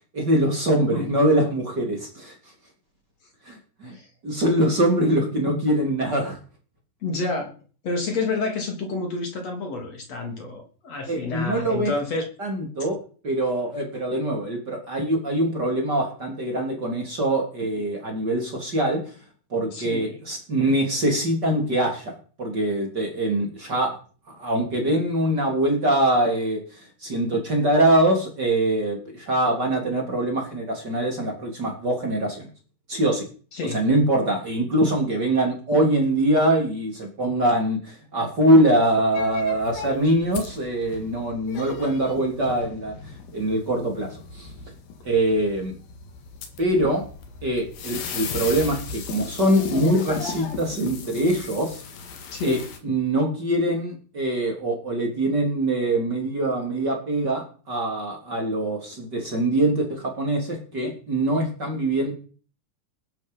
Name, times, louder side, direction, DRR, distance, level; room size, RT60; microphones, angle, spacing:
voice 1, 0.1-2.3 3.5-4.0 4.2-6.4 11.1-11.9 12.4-13.0 13.2-19.0 19.5-22.1 22.4-23.9 24.3-32.5 32.9-33.3 33.7-42.9 43.3-44.1 44.3-44.5 45.1-45.8 46.6-47.0 47.4-51.8 52.4-52.6 52.8-62.1, right 1 dB, 30° right, 2 dB, 3.5 m, -23 dB
voice 2, 7.0-7.5 7.8-12.5 19.7-20.2 33.5-33.8 52.3-52.6, left 3 dB, 50° left, 3 dB, 4.1 m, -29 dB
sound 1, 39.1-52.8, left 6 dB, 85° left, 3.9 m, -36 dB
20.0 x 10.5 x 5.5 m, 0.40 s
omnidirectional pair, 4.0 m